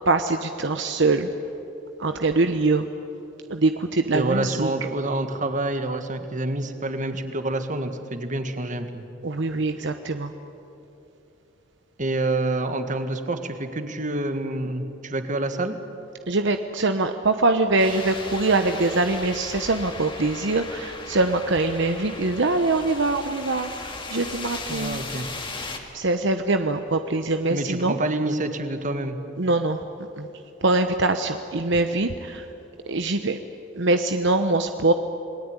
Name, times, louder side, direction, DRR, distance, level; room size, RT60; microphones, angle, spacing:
voice 1, 0.1-1.3 2.0-2.9 3.5-4.7 9.2-10.3 16.3-25.0 25.9-27.9 29.4-30.3 30.6-32.5 32.9-33.4 33.8-34.9, right 2 dB, 65° right, 7 dB, 1.0 m, -23 dB
voice 2, 4.1-9.0 12.0-15.8 24.7-25.3 27.5-29.2, right 2 dB, 40° right, 8 dB, 1.8 m, -27 dB
sound 1, 17.8-25.8, left 3 dB, 25° left, 2.4 m, -37 dB
27.5 x 20.0 x 9.8 m, 2.9 s
head